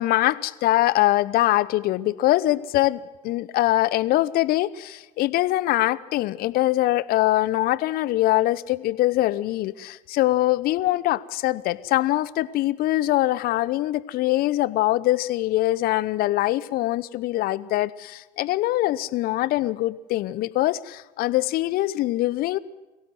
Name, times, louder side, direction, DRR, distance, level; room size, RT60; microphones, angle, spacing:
voice 1, 0.0-22.6, left 16 dB, 50° left, 18 dB, 0.9 m, -23 dB
23.0 x 17.0 x 7.9 m, 1.1 s
hypercardioid pair, 80°, 21 cm